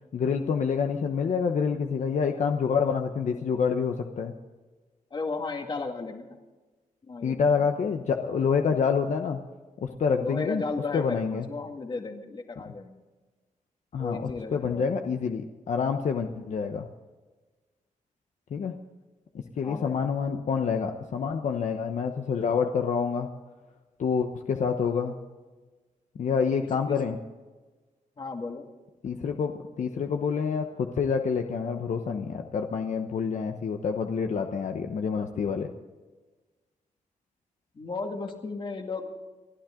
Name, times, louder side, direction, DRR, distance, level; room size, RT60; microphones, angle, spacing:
voice 1, 0.1-4.3 7.2-9.4 9.8-10.6 10.9-11.5 13.9-16.9 18.5-18.8 19.6-23.3 24.0-25.2 26.2-27.2 29.0-35.7, left 6 dB, 60° left, 4 dB, 1.1 m, -27 dB
voice 2, 5.1-6.4 7.0-7.7 10.1-13.0 14.0-14.8 19.6-20.0 26.9-27.0 28.2-28.6 37.7-39.1, left 3 dB, 35° left, 4 dB, 2.1 m, -34 dB
29.5 x 12.0 x 3.8 m, 1.3 s
wide cardioid pair, 170°, 14 cm